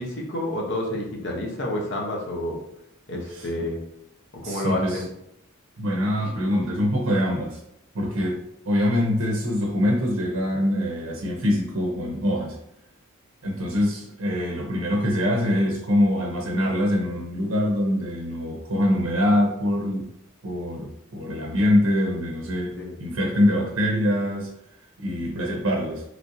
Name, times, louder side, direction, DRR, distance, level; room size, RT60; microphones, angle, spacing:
voice 1, 0.0-2.6 3.1-3.8 4.3-5.0 22.8-23.0, left 1 dB, 55° left, -1 dB, 0.7 m, -29 dB
voice 2, 4.4-5.0 5.8-7.6 7.9-8.4 8.7-12.6 13.4-20.0 20.4-24.5 25.0-26.0, left 1 dB, 70° right, -1 dB, 0.6 m, -24 dB
3.2 x 2.5 x 2.6 m, 0.77 s
head